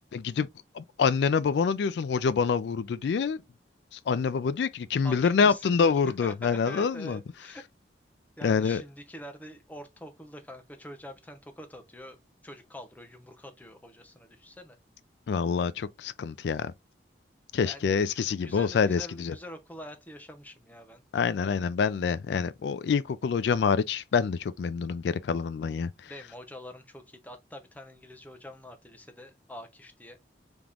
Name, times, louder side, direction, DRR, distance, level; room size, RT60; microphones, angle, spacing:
voice 1, 0.1-0.5 0.7-3.4 3.9-7.2 8.4-8.8 15.3-16.7 17.5-19.3 21.1-26.1, left 6 dB, 70° left, 0.3 m, -26 dB
voice 2, 5.0-7.7 8.4-14.8 17.6-21.5 26.1-30.2, equal, 10° left, 0.6 m, -46 dB
3.5 x 2.9 x 3.6 m
head